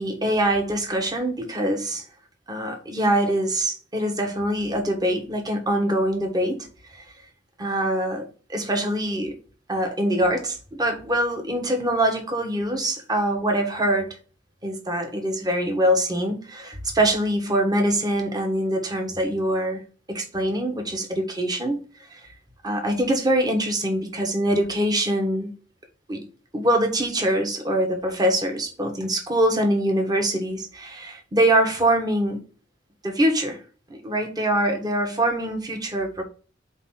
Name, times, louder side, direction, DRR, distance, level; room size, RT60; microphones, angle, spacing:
voice 1, 0.0-2.0 2.5-7.0 7.6-9.3 9.7-14.2 14.6-19.8 20.1-21.8 22.1-22.2 22.6-25.5 26.1-26.3 26.5-32.4 33.0-33.6 33.9-36.2, right 1 dB, 20° right, 3 dB, 1.4 m, -24 dB
4.3 x 4.1 x 5.7 m, 0.38 s
head